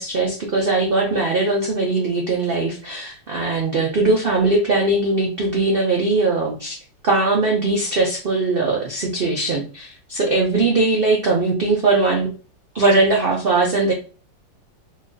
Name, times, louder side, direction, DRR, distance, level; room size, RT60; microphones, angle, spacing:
voice 1, 0.0-6.8 7.0-12.3 12.7-13.9, right 3 dB, 80° right, -1 dB, 0.5 m, -20 dB
3.1 x 2.3 x 3.8 m, 0.37 s
omnidirectional pair, 2.0 m